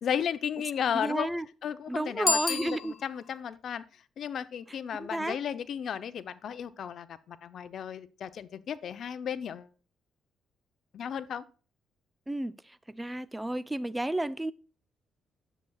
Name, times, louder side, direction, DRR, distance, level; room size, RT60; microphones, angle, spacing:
voice 1, 0.0-1.3 1.6-9.7 10.9-11.4, left 8 dB, 60° left, 0.7 m, -34 dB
voice 2, 0.9-1.4 1.9-2.9 5.0-5.4 12.3-12.5 12.9-14.5, right 1 dB, 10° right, 0.5 m, -32 dB
Bicycle bell, 2.2-3.4, left 4 dB, 45° left, 1.4 m, -30 dB
10.0 x 7.9 x 2.3 m
cardioid pair, 90°, 0 cm